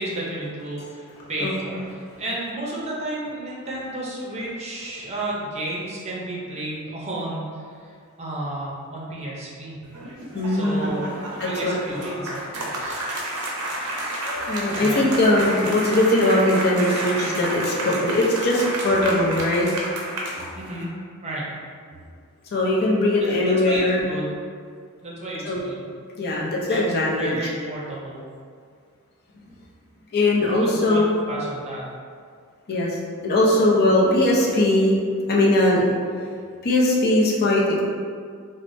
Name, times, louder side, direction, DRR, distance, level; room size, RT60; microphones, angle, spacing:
voice 1, 0.0-7.7 8.2-9.8 10.5-13.0 14.7-15.0 20.4-20.9 21.2-21.5 21.9-22.0 23.2-23.3 23.7-24.4 25.0-25.9 26.7-28.2 30.5-31.8, right 1 dB, 30° right, -5 dB, 0.6 m, -32 dB
voice 2, 1.4-1.8 10.3-10.9 11.4-11.9 14.5-19.7 22.5-24.0 25.4-25.7 26.2-27.4 30.1-31.1 32.7-32.9 33.2-35.0 35.2-35.9 36.6-37.8, left 1 dB, 45° left, -4 dB, 0.6 m, -20 dB
sound 1, 9.8-20.8, right 1 dB, 75° right, 0.6 m, -30 dB
4.7 x 2.1 x 2.6 m, 2.1 s
head